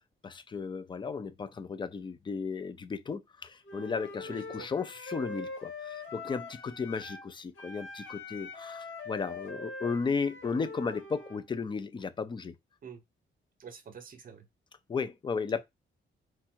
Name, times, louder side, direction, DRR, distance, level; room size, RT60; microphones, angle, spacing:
voice 1, 0.2-12.5 14.9-15.6, left 5 dB, 25° left, 0.4 m, -35 dB
Wind instrument woodwind instrument, 3.6-7.3 7.5-11.4, left 3 dB, 90° left, 1.9 m, -43 dB
voice 2, 4.2-4.7 12.8-13.0 13.6-14.5 15.6-15.7, right 6 dB, 45° right, 0.8 m, -48 dB
4.5 x 2.4 x 4.3 m
wide cardioid pair, 175°, 21 cm